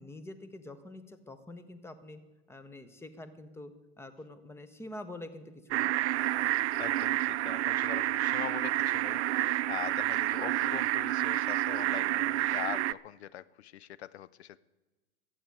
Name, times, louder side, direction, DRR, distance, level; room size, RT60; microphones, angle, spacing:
voice 1, 0.0-2.2 2.5-6.0, left 1 dB, 5° left, 11 dB, 1.0 m, -46 dB
sound 1, 5.7-12.9, right 15 dB, 75° right, 0.5 m, -29 dB
voice 2, 6.8-14.6, left 12 dB, 75° left, 19 dB, 0.5 m, -42 dB
12.0 x 7.9 x 9.4 m, 1.1 s
hypercardioid pair, 110°, 33 cm